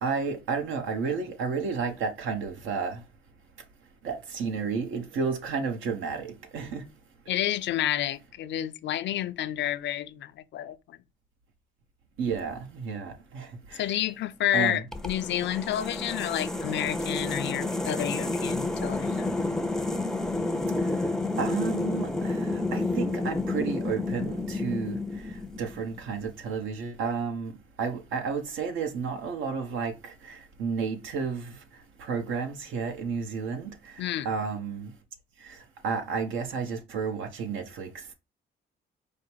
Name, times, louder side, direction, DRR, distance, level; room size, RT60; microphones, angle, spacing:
voice 1, 0.0-3.0 4.0-6.8 12.2-14.0 14.5-14.9 20.8-31.6 32.0-34.9 35.4-38.1, right 5 dB, 80° right, 1.0 m, -32 dB
voice 2, 7.3-11.0 13.8-19.3 34.0-34.3, left 12 dB, 65° left, 0.5 m, -30 dB
sound 1, 14.9-26.0, left 2 dB, 5° left, 0.5 m, -30 dB
5.0 x 2.1 x 4.6 m
cardioid pair, 90°, 20 cm